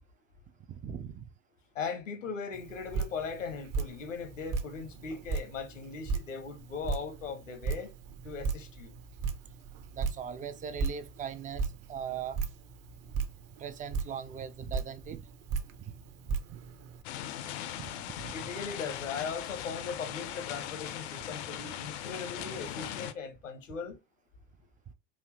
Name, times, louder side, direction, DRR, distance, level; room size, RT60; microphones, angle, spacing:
voice 1, 0.7-1.3 9.9-12.4 13.6-15.3 15.8-15.9 16.5-16.6 17.8-18.4, right 8 dB, 20° right, 0.4 m, -40 dB
voice 2, 1.7-7.9 8.2-8.9 18.3-24.0, left 5 dB, 75° left, 1.0 m, -39 dB
Drip, 2.5-17.0, right 5 dB, 40° right, 0.8 m, -37 dB
sound 1, 17.0-23.1, left 11 dB, 60° left, 0.6 m, -39 dB
4.2 x 2.7 x 3.1 m
figure-of-eight pair, 65°, 38 cm